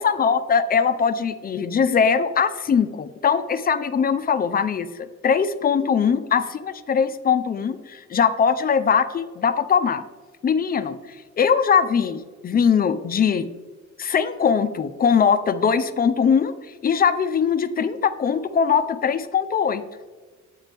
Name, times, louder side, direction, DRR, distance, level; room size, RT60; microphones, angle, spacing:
voice 1, 0.0-10.0 10.4-11.0 11.4-13.5 14.0-16.5 16.8-19.8, left 6 dB, 30° left, 12 dB, 0.4 m, -21 dB
7.4 x 4.0 x 3.3 m, 1.4 s
cardioid pair, 90°, 30 cm